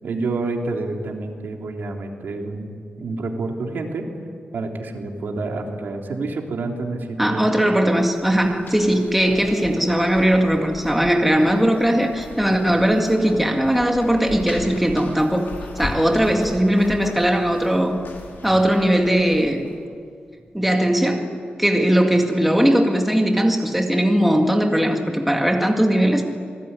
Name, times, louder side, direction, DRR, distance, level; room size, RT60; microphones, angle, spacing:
voice 1, 0.0-4.0 4.5-7.5 21.8-21.9, right 3 dB, 75° right, 2 dB, 3.4 m, -28 dB
voice 2, 7.2-15.5 15.8-18.0 18.4-19.6 20.5-21.3 21.6-26.2, equal, 5° right, 2 dB, 2.1 m, -19 dB
sound 1, 7.7-19.8, left 3 dB, 80° left, 5.0 m, -38 dB
27.5 x 20.0 x 9.8 m, 2.2 s
wide cardioid pair, 170°, 3 cm